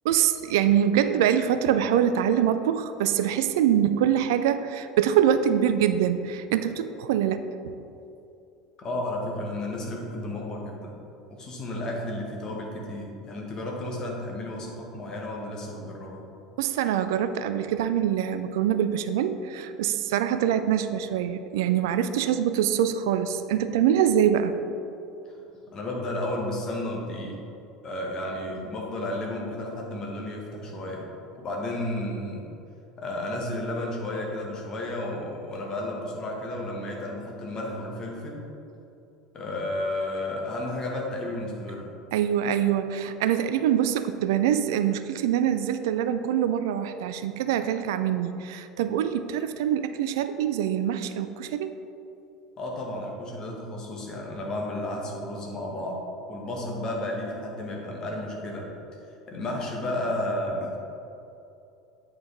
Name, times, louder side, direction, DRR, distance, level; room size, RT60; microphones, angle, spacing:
voice 1, 0.0-7.7 16.6-24.5 42.1-51.7, right 9 dB, 60° right, 10 dB, 0.3 m, -24 dB
voice 2, 8.8-11.0 11.3-16.3 25.2-27.4 27.8-31.1 31.4-32.5 33.0-38.4 39.3-41.9 52.6-58.7 59.3-60.8, left 1 dB, 30° left, -1 dB, 1.4 m, -32 dB
8.1 x 4.6 x 3.6 m, 2.8 s
figure-of-eight pair, 70°, 2 cm